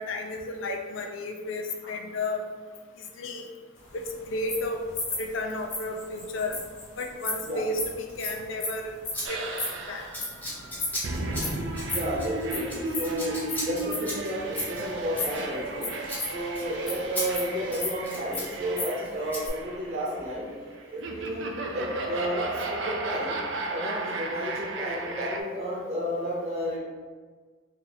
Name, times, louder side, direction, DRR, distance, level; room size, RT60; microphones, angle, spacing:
voice 1, 0.0-2.4 3.0-3.4 3.9-4.8 5.2-6.6 7.0-8.9 9.3-9.4 9.9-10.1, left 2 dB, 70° left, 3 dB, 0.5 m, -32 dB
sound 1, 3.8-11.1 11.4-11.6 11.9-12.6 12.9-15.4 15.7-17.0 17.3-19.0 19.2-19.5, left 3 dB, 35° left, 0.9 m, -34 dB
Scissors, 8.1-8.4 9.1-9.2 9.5-9.8 10.1-15.8 16.0-16.2 16.5-16.7 17.1-17.3 17.6-18.5 19.3-19.4, equal, 10° left, 0.7 m, -37 dB
sound 2, 9.2-25.4, right 2 dB, 65° right, 0.4 m, -34 dB
voice 2, 11.9-16.0 16.2-20.5 20.9-23.4 23.7-26.8, equal, 30° right, -6 dB, 1.0 m, -32 dB
2.8 x 2.7 x 3.9 m, 1.5 s
head